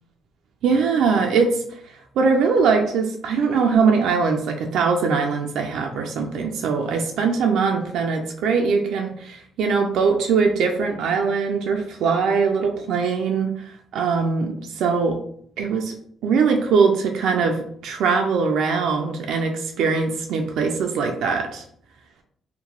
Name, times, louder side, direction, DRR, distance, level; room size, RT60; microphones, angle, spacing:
voice 1, 0.6-1.6 2.2-15.2 15.6-15.9 16.2-21.6, right 5 dB, 80° right, 3 dB, 0.3 m, -21 dB
2.8 x 2.1 x 2.9 m, 0.64 s
cardioid pair, 90°, 0 cm